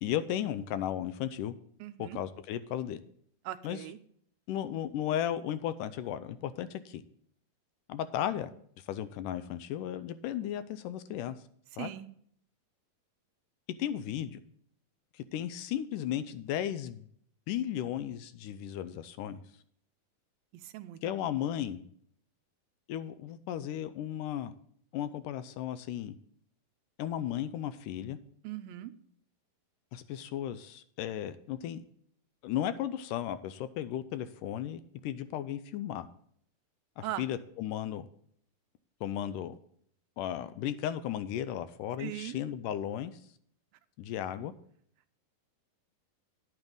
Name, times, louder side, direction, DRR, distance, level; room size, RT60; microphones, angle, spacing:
voice 1, 0.0-1.5 2.0-3.0 3.6-3.8 4.5-7.0 7.9-8.5 8.8-11.4 11.8-11.9 13.8-14.4 15.1-17.1 17.5-19.4 21.0-21.8 22.9-24.5 24.9-26.2 27.0-28.2 29.9-31.8 32.4-36.1 37.0-38.1 39.0-39.5 40.2-43.1 44.0-44.5, left 11 dB, 80° left, 12 dB, 2.0 m, -35 dB
voice 2, 1.8-2.2 3.4-4.0 11.8-12.1 20.5-21.0 28.4-28.9 37.0-37.3 42.0-42.4, right 14 dB, 90° right, 11 dB, 2.5 m, -39 dB
11.0 x 9.0 x 3.9 m, 0.62 s
omnidirectional pair, 4.0 m